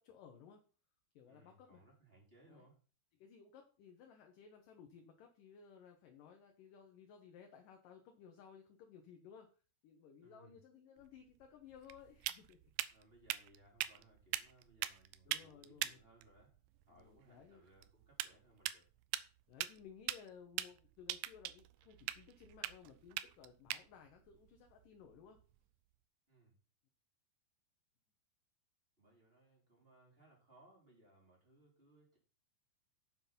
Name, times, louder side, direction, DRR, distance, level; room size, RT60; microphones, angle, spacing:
voice 1, 0.0-0.6 1.1-1.8 2.5-2.7 3.2-9.5 9.8-12.6 15.3-16.0 16.9-17.6 19.5-25.4, left 7 dB, 70° left, 4 dB, 2.4 m, -58 dB
voice 2, 1.3-2.8 10.2-10.6 12.9-16.6 16.9-18.9 26.3-26.5 29.0-32.2, right 2 dB, 15° right, -3 dB, 3.7 m, -66 dB
sound 1, 11.0-25.7, right 15 dB, 85° right, 2.1 m, -45 dB
7.9 x 7.5 x 5.7 m, 0.38 s
omnidirectional pair, 4.7 m